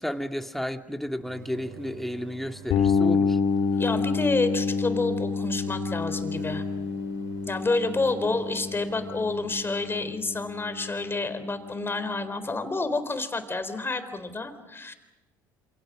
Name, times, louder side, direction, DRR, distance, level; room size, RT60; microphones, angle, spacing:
voice 1, 0.0-3.4, equal, ahead, 6 dB, 2.1 m, -32 dB
sound 1, 1.2-9.4, right 5 dB, 80° right, 4.3 m, -47 dB
sound 2, 2.7-12.4, left 5 dB, 55° left, 3.2 m, -29 dB
voice 2, 3.8-6.6 7.4-14.9, left 3 dB, 20° left, 11 dB, 3.9 m, -29 dB
28.0 x 27.5 x 6.3 m, 1.1 s
hypercardioid pair, 60°, 11 cm